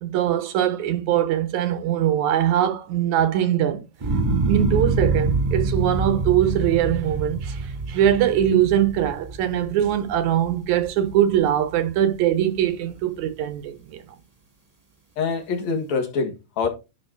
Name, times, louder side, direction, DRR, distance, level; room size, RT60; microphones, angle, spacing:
voice 1, 0.0-3.8 4.5-14.0, right 11 dB, 75° right, 2.3 m, -22 dB
sound 1, 4.0-10.3 10.8-11.4, right 3 dB, 15° right, 1.8 m, -25 dB
voice 2, 15.2-16.7, left 5 dB, 65° left, 2.9 m, -25 dB
11.0 x 4.1 x 4.6 m
omnidirectional pair, 3.5 m